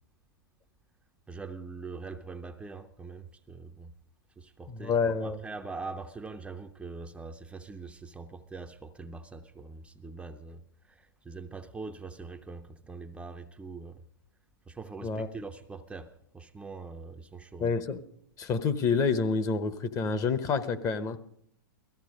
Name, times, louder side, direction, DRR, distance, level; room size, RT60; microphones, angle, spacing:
voice 1, 1.3-3.9 4.4-5.0 5.2-14.0 14.7-17.7, right 4 dB, 10° right, 0.6 m, -43 dB
voice 2, 4.7-5.4 15.0-15.3 17.6-18.0 18.4-21.2, left 5 dB, 30° left, 1.0 m, -28 dB
17.0 x 14.5 x 5.2 m
hypercardioid pair, 115°, 12 cm